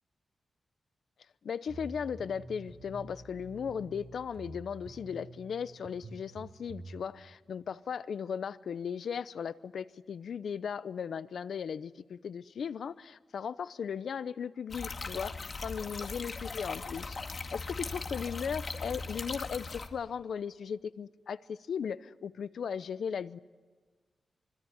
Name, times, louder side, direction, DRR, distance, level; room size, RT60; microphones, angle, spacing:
voice 1, 1.4-15.4 15.6-17.2 17.5-23.4, left 7 dB, 80° left, 0.7 m, -37 dB
sound 1, 1.7-7.0, right 2 dB, 50° right, 7.2 m, -48 dB
sound 2, 14.7-19.9, left 3 dB, 45° left, 2.0 m, -39 dB
25.0 x 25.0 x 9.6 m
wide cardioid pair, 140°, 0 cm